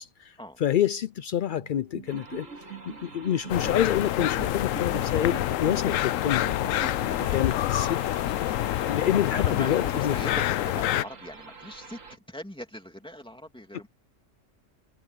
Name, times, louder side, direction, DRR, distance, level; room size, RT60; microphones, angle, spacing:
voice 1, 0.0-8.0 8.9-10.1, left 10 dB, 65° left, 0.5 m, -28 dB
sound 1, 1.6-8.3, right 6 dB, 65° right, 3.3 m, -44 dB
sound 2, 2.1-12.2, right 3 dB, 85° right, 2.6 m, -46 dB
sound 3, 3.5-11.0, left 14 dB, 80° left, 1.0 m, -27 dB
voice 2, 9.1-13.9, equal, 5° left, 2.9 m, -40 dB
omnidirectional pair, 1.3 m